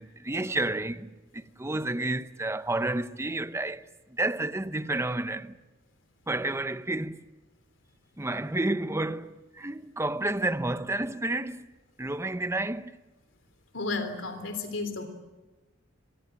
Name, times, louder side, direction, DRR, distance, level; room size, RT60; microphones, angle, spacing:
voice 1, 0.0-5.6 6.3-7.2 8.2-11.7 12.0-13.0, right 2 dB, 15° right, 0.8 m, -30 dB
voice 2, 13.7-15.1, left 3 dB, 75° left, 3.6 m, -32 dB
24.5 x 21.5 x 8.7 m
head